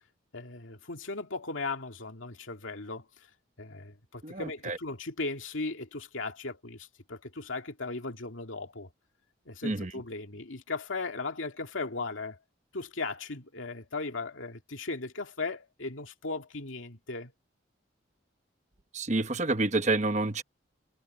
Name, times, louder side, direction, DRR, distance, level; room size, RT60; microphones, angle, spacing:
voice 1, 0.3-3.3 3.6-8.9 9.5-12.4 12.7-17.3, left 3 dB, 85° left, 2.3 m, -37 dB
voice 2, 4.2-4.8 9.6-9.9 18.9-20.4, right 2 dB, 35° right, 1.0 m, -28 dB
head